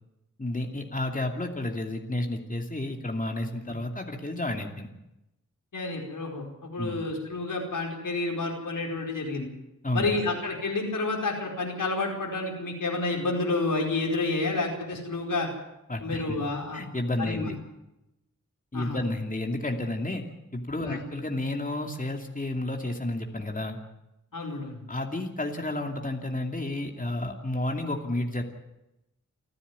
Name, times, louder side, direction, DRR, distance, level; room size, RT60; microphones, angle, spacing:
voice 1, 0.4-4.9 6.8-7.0 9.8-10.2 15.9-16.4 16.7-17.5 18.7-20.2 20.5-23.8 24.9-28.4, left 1 dB, 25° left, 3 dB, 2.7 m, -31 dB
voice 2, 5.7-9.5 9.9-15.5 16.0-16.8 17.2-17.5 18.7-19.0 20.8-21.0 24.3-24.8, left 3 dB, 85° left, 0 dB, 4.9 m, -29 dB
29.5 x 9.9 x 9.5 m, 0.91 s
cardioid pair, 55°, 32 cm